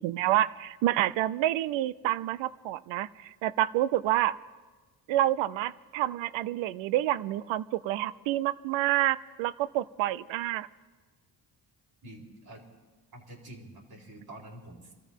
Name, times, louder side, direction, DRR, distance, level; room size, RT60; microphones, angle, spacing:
voice 1, 0.0-4.4 5.1-10.7, right 14 dB, 85° right, 18 dB, 0.6 m, -28 dB
voice 2, 12.0-12.7 13.1-14.9, right 1 dB, 55° right, -1 dB, 4.3 m, -47 dB
26.5 x 14.0 x 3.7 m, 1.3 s
cardioid pair, 70°, 44 cm